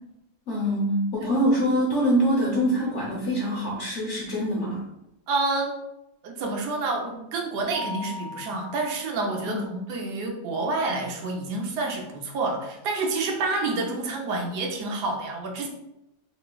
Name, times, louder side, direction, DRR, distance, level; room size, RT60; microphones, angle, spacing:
voice 1, 0.5-4.8 9.4-9.6, equal, 60° left, -4 dB, 0.8 m, -24 dB
voice 2, 5.3-5.7 6.2-15.7, right 3 dB, 85° right, 0 dB, 1.3 m, -28 dB
Mallet percussion, 7.7-9.5, left 2 dB, 65° right, 1.1 m, -38 dB
3.2 x 3.0 x 2.3 m, 0.88 s
omnidirectional pair, 1.7 m